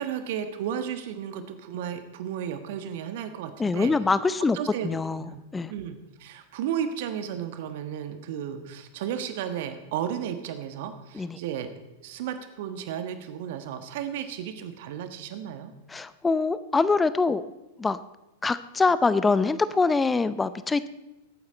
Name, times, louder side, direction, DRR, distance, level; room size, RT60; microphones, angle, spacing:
voice 1, 0.0-3.9 4.5-5.4 5.7-11.7 12.0-15.7, right 9 dB, 55° right, 9 dB, 1.3 m, -34 dB
voice 2, 3.6-4.6 4.8-5.7 11.1-11.4 15.9-17.4 17.8-18.0 18.4-20.9, left 4 dB, 15° left, 15 dB, 0.6 m, -24 dB
21.0 x 8.7 x 4.3 m, 1.0 s
figure-of-eight pair, 95°, 0 cm